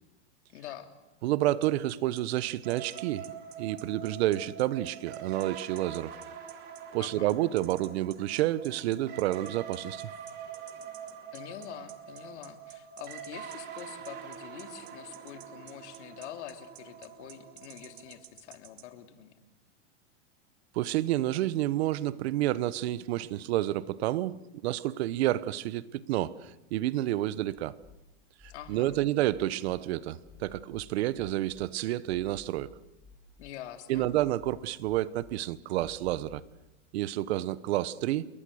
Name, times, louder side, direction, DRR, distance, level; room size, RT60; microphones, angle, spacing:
voice 1, 0.5-0.9 7.0-7.3 11.3-19.3 28.5-28.9 33.4-34.1, left 11 dB, 65° left, 7 dB, 2.8 m, -45 dB
voice 2, 1.2-3.3 3.6-6.2 6.9-10.1 20.7-27.8 28.7-32.7 33.9-36.4 36.9-38.3, right 14 dB, 55° right, 18 dB, 1.1 m, -29 dB
sound 1, 1.6-18.9, right 12 dB, 80° right, 2.6 m, -52 dB
sound 2, 2.6-18.2, right 8 dB, 25° right, 3.4 m, -45 dB
sound 3, 27.6-28.0 28.4-29.8 30.2-31.7 32.1-33.5 33.9-35.3 35.8-36.5, left 5 dB, 5° left, 5.4 m, -54 dB
28.5 x 22.5 x 6.5 m, 1.0 s
supercardioid pair, 155°, 37 cm